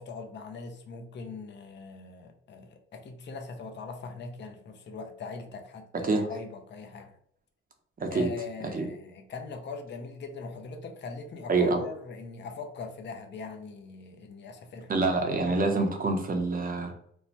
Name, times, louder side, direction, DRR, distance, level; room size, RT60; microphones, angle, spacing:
voice 1, 0.0-7.1 8.1-14.9, left 4 dB, 35° left, 5 dB, 0.5 m, -41 dB
voice 2, 8.0-8.3 8.7-8.9 11.5-11.8 14.9-16.9, right 3 dB, 30° right, 4 dB, 0.6 m, -26 dB
3.1 x 2.1 x 2.7 m, 0.69 s
cardioid pair, 90°, 30 cm